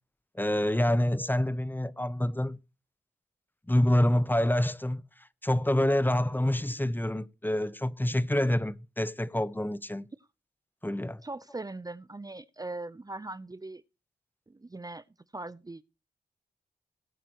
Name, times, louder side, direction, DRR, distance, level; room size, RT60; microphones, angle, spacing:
voice 1, 0.3-2.6 3.7-5.0 5.4-10.1 10.8-11.2, left 1 dB, 10° left, 0.9 m, -27 dB
voice 2, 11.2-13.8 14.5-15.0 15.3-15.8, right 2 dB, 20° right, 0.7 m, -40 dB
19.0 x 8.9 x 3.0 m
supercardioid pair, 45°, 18 cm